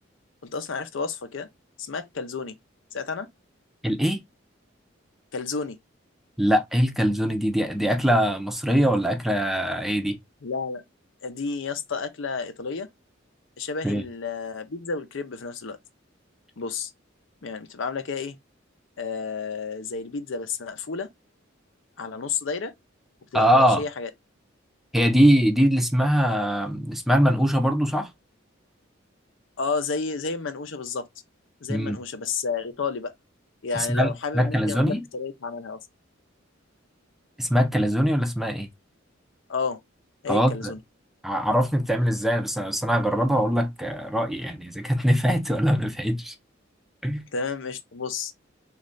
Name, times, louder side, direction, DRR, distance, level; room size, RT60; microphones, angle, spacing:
voice 1, 0.4-1.5 1.8-2.5 2.9-3.3 5.3-5.8 10.4-10.8 11.2-12.9 13.6-15.8 16.6-16.9 17.4-18.4 19.0-21.1 22.0-22.7 23.3-24.1 29.6-31.1 31.6-33.1 33.6-35.8 39.5-39.8 40.2-40.8 47.3-48.3, left 4 dB, 70° left, 0.6 m, -31 dB
voice 2, 3.8-4.2 6.4-10.2 13.8-14.0 23.3-23.8 24.9-28.1 31.7-32.0 33.7-35.0 37.4-38.7 40.3-40.7 41.2-46.3 47.0-47.2, equal, ahead, 0.5 m, -22 dB
3.2 x 2.4 x 3.7 m
head